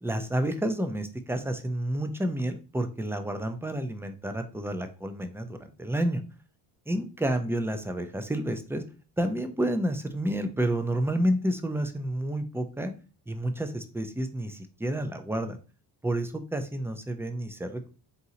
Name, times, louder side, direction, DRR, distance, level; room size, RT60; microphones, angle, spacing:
voice 1, 0.0-6.2 6.9-8.8 9.2-12.9 13.3-15.6 16.0-17.9, right 1 dB, 5° right, 7 dB, 0.6 m, -30 dB
4.1 x 3.7 x 2.8 m, 0.35 s
supercardioid pair, 70°, 48 cm